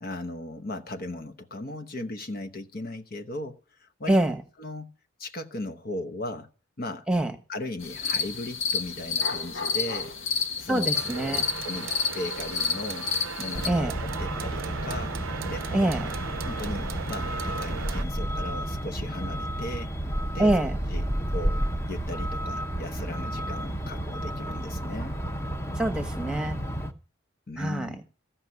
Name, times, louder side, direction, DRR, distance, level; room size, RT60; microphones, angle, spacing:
voice 1, 0.0-4.2 4.6-4.9 5.2-6.5 6.8-7.1 7.5-10.1 10.6-11.0 11.6-13.1 13.4-15.1 15.5-15.9 16.4-19.9 20.3-20.5 20.9-25.2 27.5-28.0, left 1 dB, 45° left, 0.9 m, -37 dB
voice 2, 4.1-4.4 7.1-7.3 10.7-11.4 13.6-13.9 15.7-16.1 20.4-20.8 25.7-26.6 27.6-27.9, right 1 dB, 5° right, 1.4 m, -25 dB
sound 1, 7.8-13.7, left 5 dB, 70° left, 1.5 m, -30 dB
sound 2, 10.9-18.0, right 6 dB, 75° right, 0.6 m, -37 dB
Truck, 13.5-26.9, equal, 15° left, 0.9 m, -31 dB
15.5 x 5.6 x 9.6 m
head